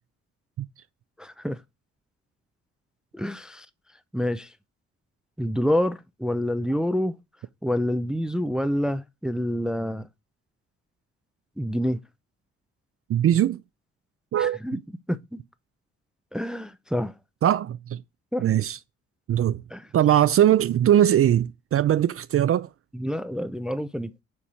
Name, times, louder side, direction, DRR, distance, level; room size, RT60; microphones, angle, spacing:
voice 1, 1.2-1.6 3.1-3.7 4.1-4.5 5.4-7.1 7.6-10.1 11.6-12.0 14.4-14.8 15.1-15.4 16.3-17.1 18.3-18.4 19.7-19.9 22.9-24.1, equal, ahead, 0.5 m, -27 dB
voice 2, 13.1-13.6 14.3-14.6 17.4-18.0 18.4-18.8 19.3-19.6 19.9-22.7, right 11 dB, 50° right, 0.5 m, -20 dB
7.2 x 4.5 x 4.9 m
cardioid pair, 90°, 30 cm